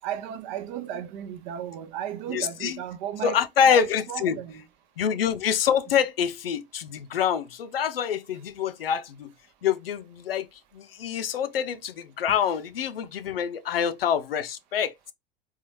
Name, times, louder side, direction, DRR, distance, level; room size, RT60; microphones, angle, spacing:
voice 1, 0.0-3.3 3.7-4.6, right 10 dB, 50° right, 0.7 m, -34 dB
voice 2, 2.3-2.8 3.2-4.4 5.0-9.3 9.6-14.9, left 8 dB, 75° left, 0.5 m, -26 dB
3.9 x 2.3 x 3.0 m
figure-of-eight pair, 75°, 29 cm